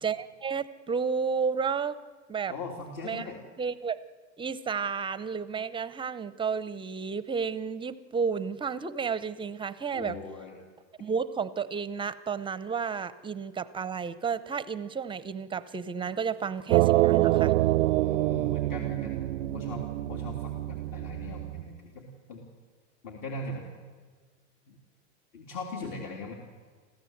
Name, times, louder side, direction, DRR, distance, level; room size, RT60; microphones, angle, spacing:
voice 1, 0.0-2.0 2.3-2.5 3.0-3.3 3.6-4.0 4.4-10.2 11.0-17.5, right 6 dB, 15° right, 15 dB, 0.5 m, -32 dB
voice 2, 2.5-3.4 9.9-10.6 18.0-22.4 23.0-23.7 24.7-24.8 25.3-26.3, left 2 dB, 55° left, 0 dB, 3.2 m, -40 dB
sound 1, 16.7-21.6, right 17 dB, 85° right, 0.5 m, -26 dB
25.5 x 14.5 x 7.9 m, 1.5 s
supercardioid pair, 120°, 36 cm